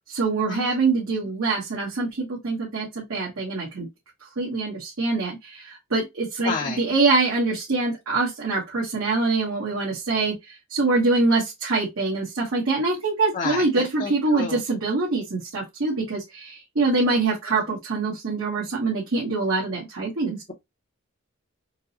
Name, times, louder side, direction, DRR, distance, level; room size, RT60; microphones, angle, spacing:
voice 1, 0.1-3.9 4.4-20.4, right 3 dB, 80° right, 1.2 m, -24 dB
voice 2, 6.4-6.8 13.3-14.6 17.7-17.8, left 5 dB, 40° left, 0.5 m, -31 dB
4.5 x 2.0 x 2.7 m
head